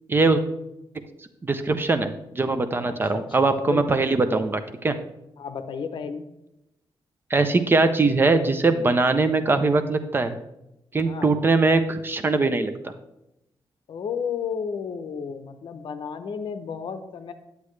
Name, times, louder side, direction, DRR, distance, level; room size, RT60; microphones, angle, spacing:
voice 1, 0.1-0.4 1.4-5.0 7.3-10.4 10.9-12.9, right 3 dB, 25° right, 9 dB, 0.5 m, -21 dB
voice 2, 2.8-4.2 5.4-6.2 11.1-11.3 13.9-17.3, left 6 dB, 60° left, 9 dB, 0.7 m, -33 dB
9.7 x 8.2 x 3.2 m, 0.87 s
wide cardioid pair, 160°, 9 cm